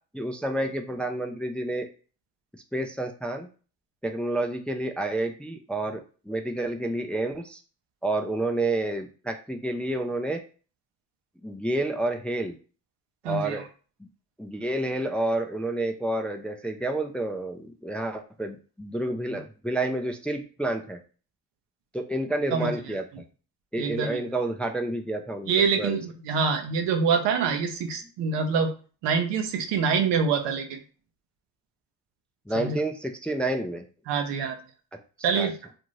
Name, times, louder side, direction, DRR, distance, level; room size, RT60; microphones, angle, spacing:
voice 1, 0.1-1.9 2.7-3.5 4.0-7.6 8.0-10.4 11.4-12.6 13.3-13.7 14.4-21.0 21.9-23.0 23.7-26.0 32.5-33.8 35.2-35.5, right 2 dB, 5° left, 4 dB, 0.3 m, -29 dB
voice 2, 13.2-13.6 22.5-22.7 23.8-24.2 25.5-28.7 29.0-30.8 32.5-32.8 34.1-34.6 35.2-35.6, right 5 dB, 85° right, 5 dB, 0.7 m, -25 dB
2.6 x 2.5 x 3.1 m, 0.38 s
supercardioid pair, 60°, 42 cm